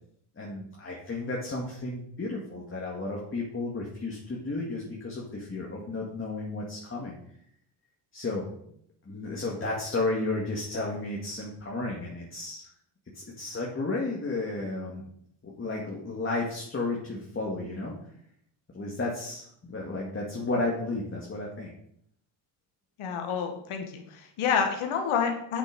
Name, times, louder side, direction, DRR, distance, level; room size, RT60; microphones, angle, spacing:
voice 1, 0.4-7.1 8.1-8.5 9.1-12.7 13.1-15.0 15.4-17.9 18.7-21.7, left 2 dB, 25° left, -2 dB, 2.1 m, -33 dB
voice 2, 23.0-25.6, left 6 dB, 75° left, 4 dB, 1.7 m, -28 dB
8.1 x 7.1 x 5.4 m, 0.69 s
cardioid pair, 110°, 49 cm